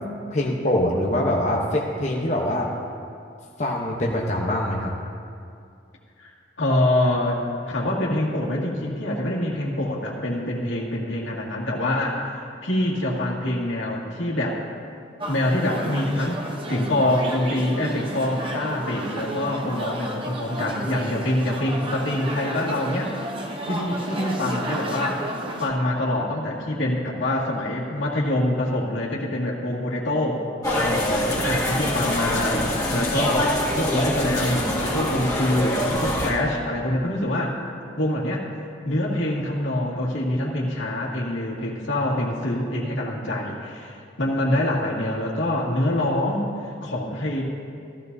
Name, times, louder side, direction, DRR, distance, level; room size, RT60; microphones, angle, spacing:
voice 1, 0.3-2.7 3.6-4.9, left 1 dB, 35° left, -2 dB, 0.9 m, -24 dB
voice 2, 6.6-12.3 12.6-14.6 15.3-23.2 23.6-25.3 25.6-30.4 30.7-34.7 34.9-37.5 38.0-38.4 38.8-47.4, left 1 dB, 85° left, -4 dB, 2.1 m, -25 dB
sound 1, 15.2-25.7, right 1 dB, 25° right, 0.9 m, -32 dB
sound 2, 30.6-36.3, left 1 dB, 20° left, 2.0 m, -24 dB
15.0 x 14.5 x 2.7 m, 2.4 s
head